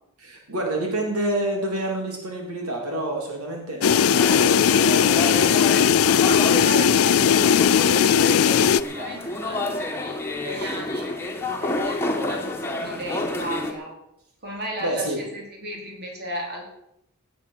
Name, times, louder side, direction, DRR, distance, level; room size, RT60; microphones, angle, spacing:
voice 1, 0.2-5.3 14.8-15.2, right 1 dB, 80° right, 0 dB, 3.4 m, -28 dB
sound 1, 3.8-8.8, left 8 dB, 75° left, 0.4 m, -18 dB
sound 2, 4.1-13.7, left 2 dB, 10° left, 1.9 m, -29 dB
voice 2, 6.2-11.1 11.5-13.9 14.4-16.7, right 1 dB, 45° right, -1 dB, 4.5 m, -35 dB
17.5 x 9.1 x 6.6 m, 0.80 s
head